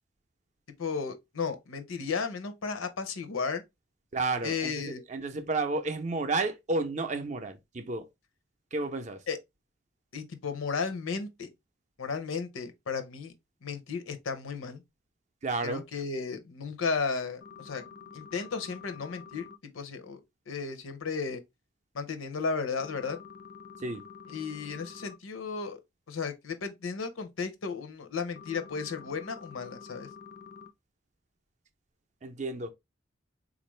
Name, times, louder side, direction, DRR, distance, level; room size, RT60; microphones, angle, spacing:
voice 1, 0.8-3.6 4.4-5.0 9.3-9.4 10.1-11.5 12.0-13.3 13.6-14.8 15.6-17.8 18.1-19.5 19.7-20.2 20.5-21.4 21.9-23.2 24.3-25.8 26.1-30.1, left 5 dB, 85° left, 0.7 m, -34 dB
voice 2, 4.1-8.1 8.7-9.2 15.4-15.8 23.8-24.0 32.2-32.7, right 3 dB, 35° right, 0.5 m, -31 dB
sound 1, 17.4-19.6 22.8-25.1 28.4-30.7, left 6 dB, 45° left, 0.4 m, -48 dB
3.8 x 2.5 x 3.0 m
head